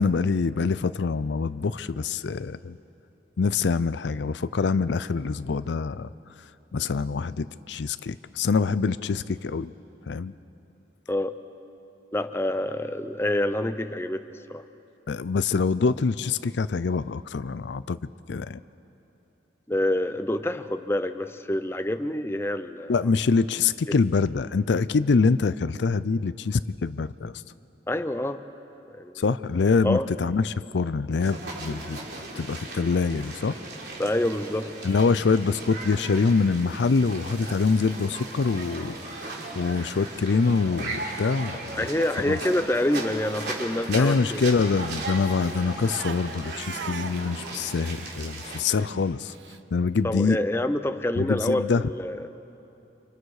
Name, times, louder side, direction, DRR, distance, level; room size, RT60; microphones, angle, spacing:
voice 1, 0.0-2.8 3.4-6.1 6.7-9.7 10.1-10.3 15.1-18.0 18.3-18.6 22.9-27.4 29.2-32.0 32.4-33.6 34.8-41.8 42.2-42.4 43.9-49.3 49.7-50.4 51.2-51.9, left 4 dB, 75° left, 15 dB, 0.5 m, -25 dB
voice 2, 12.1-14.6 19.7-23.1 23.9-24.0 27.9-28.4 29.0-29.2 29.8-30.1 34.0-34.7 41.7-44.4 50.0-52.3, left 1 dB, 15° left, 10 dB, 0.6 m, -27 dB
sound 1, 31.2-48.6, right 2 dB, 65° right, 3.5 m, -37 dB
Crying sobbing, 42.1-44.3 44.5-49.6, right 5 dB, 80° right, 0.8 m, -42 dB
30.0 x 26.5 x 4.8 m, 3.0 s
head